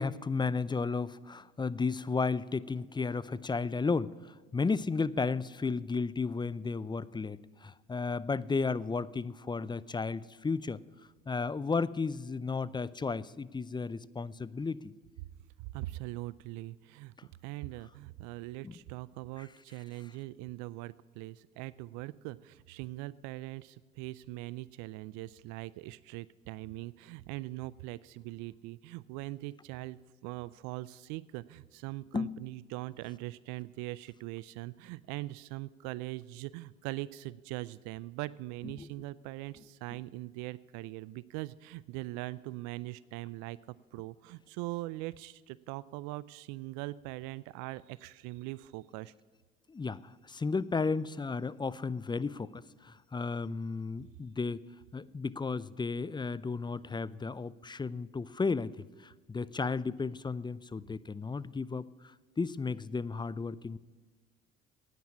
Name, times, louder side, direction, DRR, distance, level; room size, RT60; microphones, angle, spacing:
voice 1, 0.0-10.8 11.3-14.9 18.6-18.7 32.1-32.4 38.8-38.9 49.7-54.6 54.9-58.7 59.0-63.8, left 4 dB, 15° left, 18 dB, 0.5 m, -33 dB
voice 2, 15.6-17.1 17.4-49.1, right 18 dB, 70° right, 20 dB, 0.4 m, -41 dB
11.0 x 9.3 x 8.4 m, 1.4 s
hypercardioid pair, 60°, 30 cm